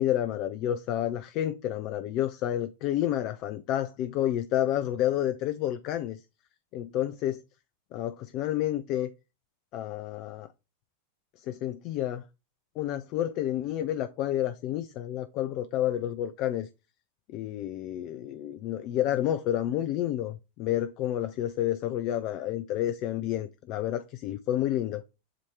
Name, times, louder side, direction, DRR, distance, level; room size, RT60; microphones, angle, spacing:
voice 1, 0.0-6.2 6.7-7.4 7.9-9.1 9.7-10.5 11.4-12.2 12.8-16.7 17.3-25.0, left 12 dB, 40° left, 0.4 m, -30 dB
7.7 x 2.8 x 4.6 m
figure-of-eight pair, 90°, 0 cm